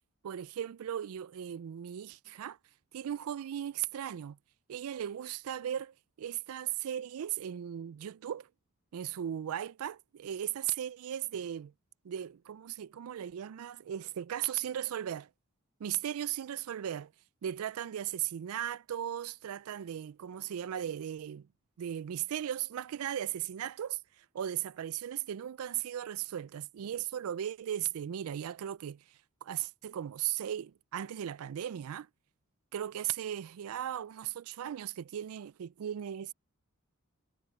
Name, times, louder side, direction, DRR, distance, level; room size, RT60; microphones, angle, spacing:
voice 1, 0.2-2.6 2.9-4.4 4.7-8.5 8.9-11.7 12.0-15.3 15.8-17.1 17.4-21.5 21.8-32.1 32.7-36.3, right 10 dB, 85° right, 0.4 m, -37 dB
head